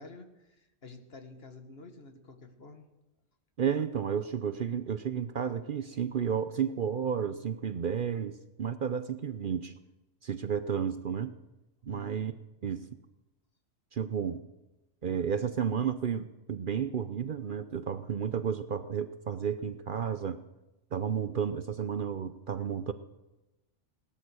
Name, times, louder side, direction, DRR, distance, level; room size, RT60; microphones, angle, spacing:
voice 1, 0.0-2.9 11.9-12.3, left 3 dB, 55° left, 7 dB, 1.7 m, -49 dB
voice 2, 3.6-9.7 10.2-11.3 11.8-12.3 12.6-12.9 13.9-14.4 15.0-20.4 20.9-22.9, right 7 dB, 50° right, 12 dB, 0.8 m, -32 dB
18.0 x 13.0 x 6.4 m, 1.0 s
omnidirectional pair, 1.2 m